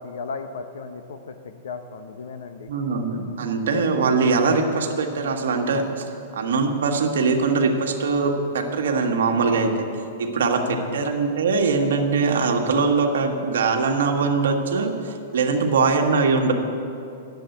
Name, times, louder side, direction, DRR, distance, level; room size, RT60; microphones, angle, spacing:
voice 1, 0.0-2.7 10.5-11.1 15.6-15.7, left 4 dB, 85° left, 8 dB, 0.7 m, -35 dB
voice 2, 2.7-6.0 6.3-9.7 10.2-10.6 10.9-16.5, right 4 dB, 85° right, 3 dB, 1.5 m, -22 dB
10.5 x 7.7 x 9.1 m, 2.7 s
hypercardioid pair, 150°, 0 cm